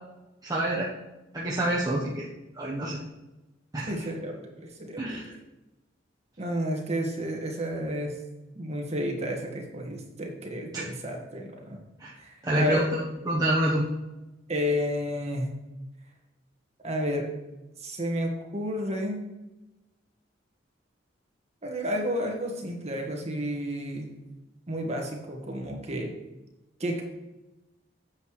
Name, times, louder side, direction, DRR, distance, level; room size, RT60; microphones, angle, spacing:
voice 1, 0.4-0.9 1.3-2.3 2.6-3.0 3.7-3.9 5.0-5.2 10.7-10.8 12.0-12.1 12.4-13.8, right 1 dB, 20° right, -5 dB, 1.0 m, -27 dB
voice 2, 3.9-5.4 6.4-8.2 8.5-11.8 12.2-12.8 14.5-15.5 16.8-17.3 17.8-19.2 21.6-24.1 24.7-26.1 26.8-27.0, equal, 35° right, 1 dB, 1.6 m, -31 dB
9.6 x 7.7 x 3.2 m, 1.0 s
head